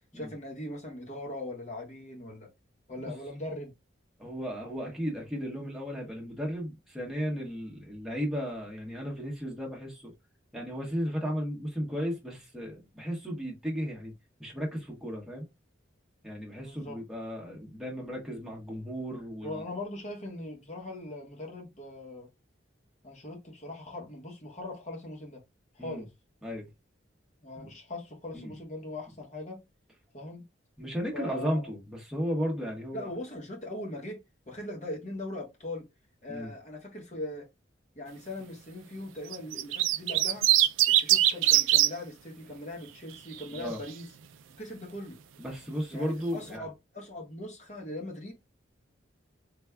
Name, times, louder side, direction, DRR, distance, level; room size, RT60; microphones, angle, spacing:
voice 1, 0.1-2.5 2.9-3.7 16.6-17.0 19.4-22.3 23.0-25.4 25.7-26.1 27.4-29.6 30.1-30.4 31.1-31.7 32.9-35.8 36.2-37.5 37.9-40.5 40.9-44.1 44.6-45.2 45.9-48.3, left 1 dB, 35° left, 1.3 m, -40 dB
voice 2, 4.2-10.1 10.5-14.1 14.4-15.4 16.2-19.6 25.8-26.0 26.4-26.7 27.6-27.7 28.3-28.5 30.8-33.1 36.3-36.5 43.5-43.8 45.4-46.6, equal, ahead, 1.2 m, -35 dB
sound 1, 39.3-41.9 43.1-43.6, right 14 dB, 85° right, 0.3 m, -22 dB
3.5 x 3.1 x 2.2 m
head